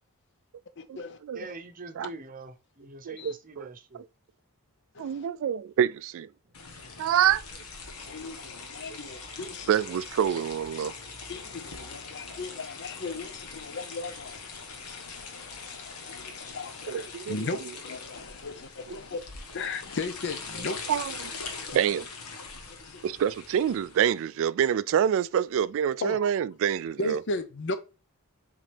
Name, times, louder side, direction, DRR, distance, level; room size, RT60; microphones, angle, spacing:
voice 1, 0.8-1.5 3.2-3.3 4.9-5.3 6.8-7.0 8.1-9.7 11.3-19.2 19.5-20.8 21.7-21.8 22.7-23.0 26.0-26.2 27.0-27.8, left 3 dB, 55° left, 0.7 m, -37 dB
voice 2, 1.3-4.1 9.9-10.0 10.3-10.5, right 3 dB, 40° right, 0.8 m, -44 dB
voice 3, 3.0-3.7 5.0-6.3 7.0-7.4 9.7-10.9 16.9-17.3 20.9-21.1 21.7-22.1 23.0-27.2, right 9 dB, 60° right, 0.3 m, -26 dB
sound 1, 6.5-24.2, left 4 dB, 90° left, 1.4 m, -42 dB
7.4 x 3.9 x 3.4 m
head